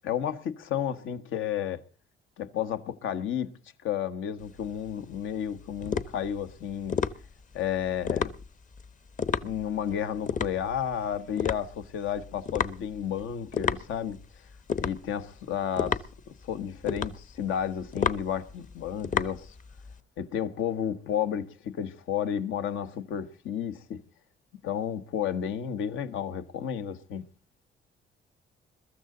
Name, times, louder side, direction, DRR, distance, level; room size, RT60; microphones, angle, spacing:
voice 1, 0.0-1.8 2.4-3.5 3.8-7.0 7.5-8.3 9.4-14.2 14.8-16.0 16.3-19.5 20.2-24.0 24.6-27.3, left 9 dB, 85° left, 1.3 m, -32 dB
sound 1, 4.4-20.0, left 6 dB, 40° left, 0.9 m, -33 dB
22.0 x 13.5 x 3.9 m
cardioid pair, 90°, 20 cm